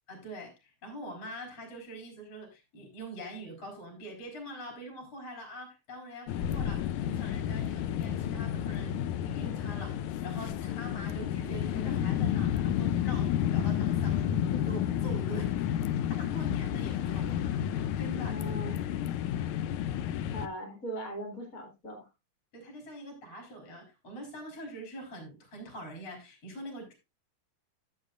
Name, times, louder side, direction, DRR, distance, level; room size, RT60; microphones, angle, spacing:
voice 1, 0.1-15.6 16.1-17.5 18.0-18.4 22.5-26.9, right 1 dB, 50° left, 1 dB, 4.7 m, -44 dB
sound 1, 6.3-20.5, left 10 dB, 75° left, 1.9 m, -31 dB
voice 2, 18.3-18.8 20.3-22.1, right 1 dB, 30° left, 1 dB, 2.0 m, -40 dB
13.5 x 7.8 x 2.5 m, 0.24 s
omnidirectional pair, 3.8 m